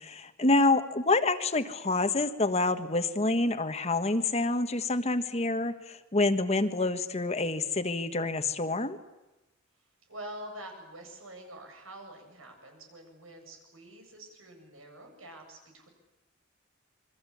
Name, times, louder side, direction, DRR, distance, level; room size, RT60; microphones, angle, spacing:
voice 1, 0.0-9.0, left 2 dB, 30° left, 9 dB, 1.5 m, -27 dB
voice 2, 10.1-15.9, right 1 dB, 85° right, 4 dB, 7.9 m, -46 dB
28.5 x 23.5 x 8.6 m, 1.0 s
head